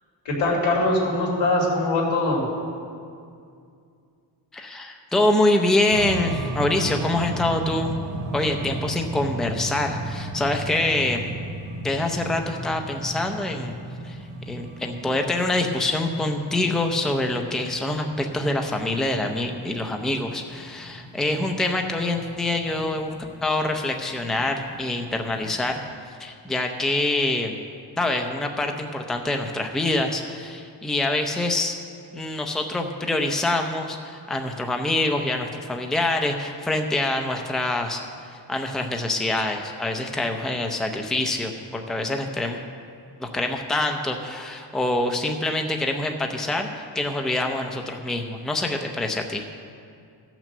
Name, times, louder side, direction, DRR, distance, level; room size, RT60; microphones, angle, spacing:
voice 1, 0.2-2.4, left 2 dB, 90° left, -3 dB, 3.0 m, -22 dB
voice 2, 4.5-7.9 8.3-11.2 11.8-13.7 14.0-14.2 14.5-23.1 23.4-25.8 26.1-27.6 28.0-31.8 32.1-38.0 38.3-42.6 43.2-49.4, left 2 dB, ahead, 3 dB, 0.6 m, -25 dB
sound 1, 5.9-25.7, right 1 dB, 75° right, 1.2 m, -35 dB
14.5 x 6.1 x 6.7 m, 2.3 s
cardioid pair, 140°, 44 cm